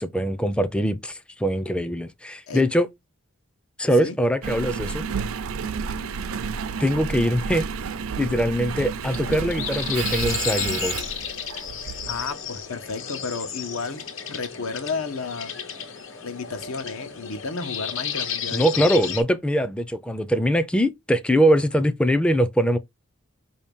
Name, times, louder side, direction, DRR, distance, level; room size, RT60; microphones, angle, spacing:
voice 1, 0.0-2.9 3.8-5.0 6.8-7.7 8.2-11.0 18.5-22.8, equal, 5° left, 0.3 m, -22 dB
Engine, 4.4-12.3 12.9-13.0, right 6 dB, 85° right, 0.5 m, -31 dB
sound 1, 9.0-19.2, left 8 dB, 70° left, 1.2 m, -32 dB
voice 2, 12.1-15.5 16.2-18.8, left 4 dB, 85° left, 0.9 m, -32 dB
5.0 x 2.8 x 3.5 m
head